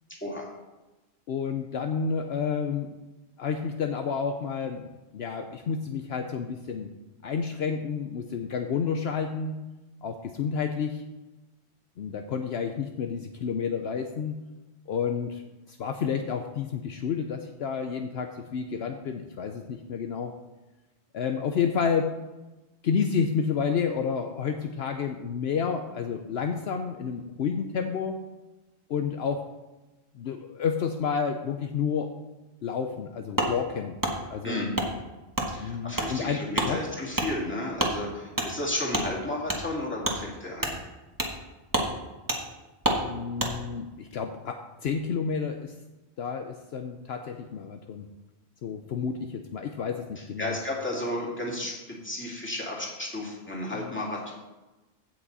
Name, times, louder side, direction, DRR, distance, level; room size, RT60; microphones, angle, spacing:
voice 1, 1.3-3.0 3.4-6.9 7.2-9.6 10.0-11.0 12.0-14.4 14.9-15.4 15.7-20.3 21.1-22.1 22.8-28.2 28.9-29.4 30.1-32.1 32.6-34.0 34.3-34.7 35.6-36.8 43.0-45.7 46.2-48.1 48.6-50.6 53.7-53.9, left 6 dB, 70° left, 5 dB, 0.9 m, -30 dB
Wood, 33.4-33.5 34.0-34.1 34.7-34.9 35.3-35.5 35.9-36.1 36.5-36.7 37.1-37.3 37.8-37.9 38.4-38.5 38.9-39.1 39.5-39.6 40.0-40.2 40.6-40.8 41.2-41.4 41.7-41.9 42.3-42.4 42.8-43.0 43.4-43.5, right 1 dB, 20° right, 1.3 m, -27 dB
voice 2, 34.4-34.7 35.5-40.7 50.4-54.3, left 1 dB, 10° left, -4 dB, 2.5 m, -33 dB
16.0 x 5.9 x 4.1 m, 1.1 s
omnidirectional pair, 1.2 m